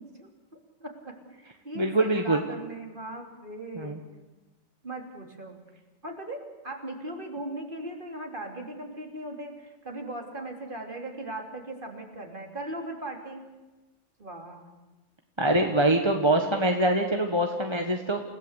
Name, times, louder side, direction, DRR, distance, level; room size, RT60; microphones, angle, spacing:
voice 1, 0.0-4.0 4.8-5.6 6.0-13.4 14.2-14.6, right 1 dB, 40° right, 2 dB, 3.6 m, -39 dB
voice 2, 1.7-2.4 3.7-4.0 15.4-18.2, right 1 dB, 20° right, 3 dB, 1.6 m, -24 dB
29.0 x 17.0 x 8.3 m, 1.1 s
omnidirectional pair, 1.3 m